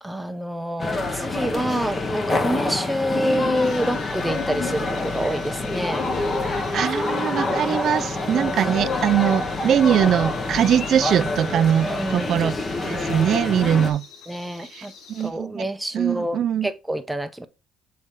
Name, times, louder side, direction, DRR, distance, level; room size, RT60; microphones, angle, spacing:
voice 1, 0.0-6.1 8.7-8.8 11.8-12.4 14.3-14.9 15.2-17.5, right 1 dB, 5° right, 0.6 m, -27 dB
sound 1, 0.8-13.9, left 2 dB, 25° left, 0.9 m, -26 dB
sound 2, 3.5-15.3, left 5 dB, 60° left, 1.2 m, -46 dB
voice 2, 6.7-12.5 12.8-14.1 14.7-15.7 15.9-16.7, right 9 dB, 50° right, 0.4 m, -22 dB
6.7 x 4.2 x 3.6 m
cardioid pair, 130°, 0 cm